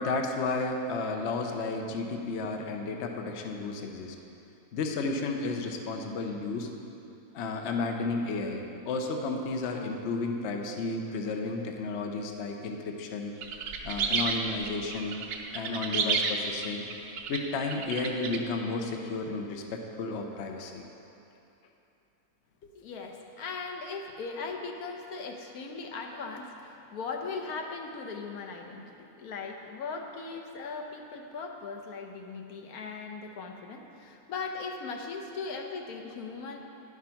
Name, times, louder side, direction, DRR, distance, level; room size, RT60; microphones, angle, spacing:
voice 1, 0.0-4.2 4.7-6.7 7.3-13.4 13.8-15.2 15.5-16.9 17.3-20.8, left 3 dB, 55° left, 3 dB, 0.9 m, -32 dB
sound 1, 13.4-18.4, right 5 dB, 85° right, 1.2 m, -31 dB
voice 2, 22.7-36.6, left 4 dB, 75° left, 3 dB, 1.2 m, -39 dB
10.0 x 6.0 x 5.7 m, 2.9 s
omnidirectional pair, 1.6 m